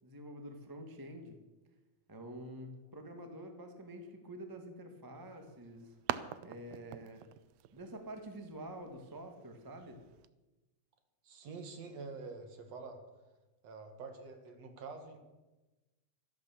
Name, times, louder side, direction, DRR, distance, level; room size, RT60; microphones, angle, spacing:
voice 1, 0.0-1.4 2.1-5.9 6.4-7.3 7.7-10.0, right 1 dB, 15° right, 5 dB, 0.7 m, -47 dB
sound 1, 5.2-10.3, right 13 dB, 80° right, 1.5 m, -45 dB
voice 2, 11.2-13.0 13.6-15.2, right 4 dB, 60° right, 6 dB, 2.9 m, -47 dB
13.5 x 11.5 x 7.0 m, 1.1 s
omnidirectional pair, 3.5 m